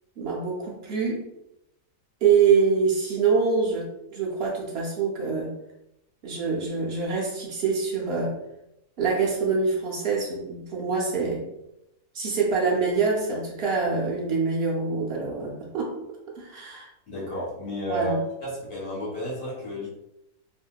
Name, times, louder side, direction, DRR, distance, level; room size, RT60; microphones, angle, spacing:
voice 1, 0.2-1.2 2.2-5.5 6.2-8.4 9.0-11.4 12.1-16.0 16.3-16.9 17.9-18.2, right 5 dB, 65° right, -2 dB, 0.6 m, -25 dB
voice 2, 17.1-19.9, equal, 70° left, -6 dB, 1.5 m, -32 dB
2.8 x 2.5 x 2.2 m, 0.85 s
omnidirectional pair, 1.6 m